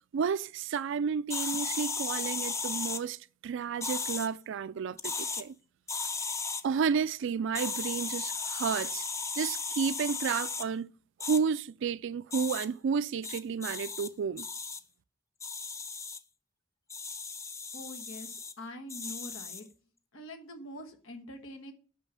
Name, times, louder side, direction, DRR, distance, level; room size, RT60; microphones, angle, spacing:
voice 1, 0.1-3.2 3.4-5.6 6.6-9.0 9.4-10.9 11.2-14.5, right 6 dB, 65° right, 0.4 m, -31 dB
sound 1, 1.3-3.0 3.8-4.3 5.0-5.4 5.9-6.6 7.5-10.7 11.2-11.4 12.3-12.7 13.2-14.1 14.4-14.8 15.4-16.2 16.9-18.5 18.9-19.6, left 4 dB, 15° left, 0.5 m, -35 dB
voice 2, 17.7-19.6 20.1-21.7, left 1 dB, 90° left, 1.4 m, -44 dB
6.2 x 5.6 x 6.8 m
head